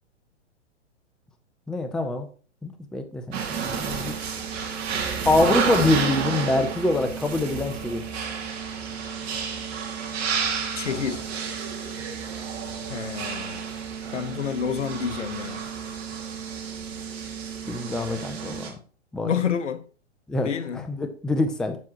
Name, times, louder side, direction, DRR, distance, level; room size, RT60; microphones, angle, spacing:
voice 1, 1.7-2.3 2.6-4.2 5.3-8.0 17.7-18.8 19.1-19.3 20.3-20.5 20.9-21.8, left 2 dB, ahead, 0.5 m, -25 dB
sound 1, 3.3-18.7, right 6 dB, 60° right, 2.3 m, -31 dB
voice 2, 10.7-11.2 12.9-13.6 14.1-15.7 19.3-19.8 20.4-20.9, left 7 dB, 85° left, 1.0 m, -29 dB
7.5 x 7.4 x 3.0 m
hypercardioid pair, 115°, 36 cm